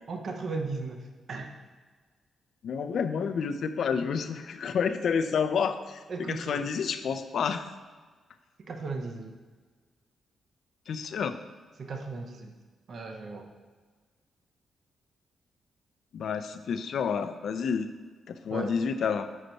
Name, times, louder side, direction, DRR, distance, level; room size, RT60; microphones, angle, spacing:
voice 1, 0.1-1.5 6.1-6.6 8.6-9.4 11.8-12.5 12.9-13.5 18.5-18.7, right 3 dB, 55° right, 4 dB, 0.6 m, -36 dB
voice 2, 2.6-7.7 10.9-11.4 16.1-17.9 18.3-19.3, left 6 dB, 70° left, 9 dB, 0.4 m, -29 dB
6.4 x 4.4 x 4.0 m, 1.4 s
cardioid pair, 85°, 0 cm